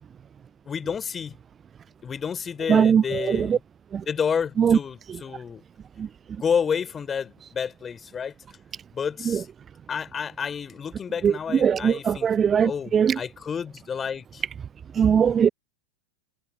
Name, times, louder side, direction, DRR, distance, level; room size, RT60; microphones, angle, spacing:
voice 1, 0.6-1.4 2.0-3.6 4.1-5.6 6.4-8.3 8.9-9.5 9.9-12.3 12.6-14.4, left 7 dB, 20° left, 4.8 m, -30 dB
voice 2, 2.7-3.6 3.9-4.0 4.6-4.8 6.0-6.1 9.3-9.4 11.2-13.2 14.9-15.5, right 7 dB, 20° right, 0.3 m, -20 dB
figure-of-eight pair, 90°, 0 cm